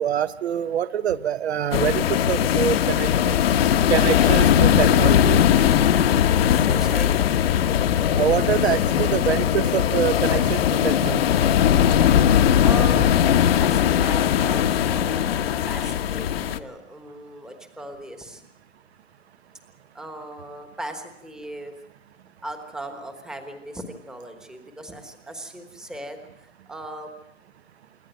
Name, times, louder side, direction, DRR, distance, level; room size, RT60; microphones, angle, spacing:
voice 1, 0.0-3.4 3.9-5.4 8.2-11.4, right 9 dB, 55° right, 13 dB, 1.0 m, -25 dB
sound 1, 1.7-16.6, left 10 dB, 50° left, 1.2 m, -19 dB
voice 2, 6.6-7.2 12.5-18.4 19.9-21.7 22.4-27.1, right 1 dB, ahead, 6 dB, 1.2 m, -38 dB
27.0 x 11.5 x 9.1 m, 0.79 s
hypercardioid pair, 160°, 37 cm